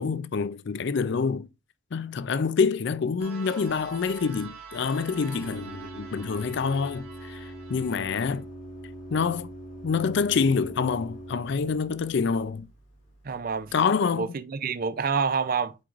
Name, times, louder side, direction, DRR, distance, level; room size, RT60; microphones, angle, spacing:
voice 1, 0.0-1.5 1.9-8.4 9.1-9.5 9.8-12.7 13.7-14.3, left 5 dB, 55° left, 0.4 m, -26 dB
sound 1, 3.2-8.4, right 6 dB, 85° right, 3.1 m, -46 dB
Organ, 3.7-13.8, right 1 dB, 70° left, 3.7 m, -44 dB
voice 2, 13.2-13.7 14.2-15.8, right 5 dB, 40° right, 0.4 m, -27 dB
8.6 x 4.6 x 2.4 m
head